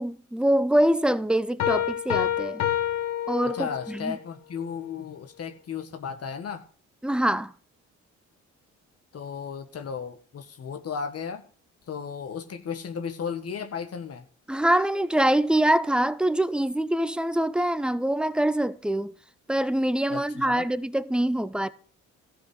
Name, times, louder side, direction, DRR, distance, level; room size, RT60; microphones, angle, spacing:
voice 1, 0.0-2.6 3.3-4.2 7.0-7.5 14.5-19.1 19.5-21.7, right 1 dB, 5° right, 0.7 m, -24 dB
sound 1, 1.6-4.1, left 11 dB, 75° left, 1.8 m, -27 dB
voice 2, 3.4-6.6 9.1-11.4 11.9-14.3 20.1-20.7, left 6 dB, 50° left, 1.6 m, -35 dB
13.5 x 5.2 x 7.9 m
cardioid pair, 90°, 30 cm